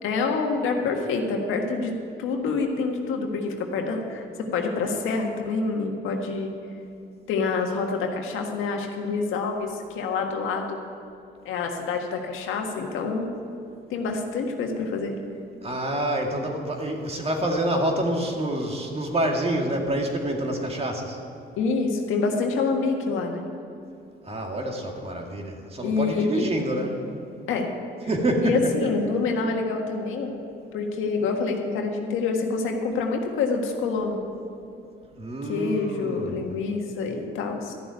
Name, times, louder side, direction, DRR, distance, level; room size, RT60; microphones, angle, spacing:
voice 1, 0.0-6.5 7.3-10.8 11.4-13.3 13.9-15.1 21.6-23.4 25.8-26.4 27.5-27.7 28.4-30.3 30.7-34.2 35.4-37.7, left 4 dB, 90° left, 2 dB, 1.7 m, -27 dB
voice 2, 15.6-21.2 24.2-27.0 28.1-28.7 35.1-36.6, right 1 dB, 30° right, 1 dB, 2.2 m, -27 dB
13.5 x 7.0 x 9.1 m, 2.6 s
cardioid pair, 90°, 20 cm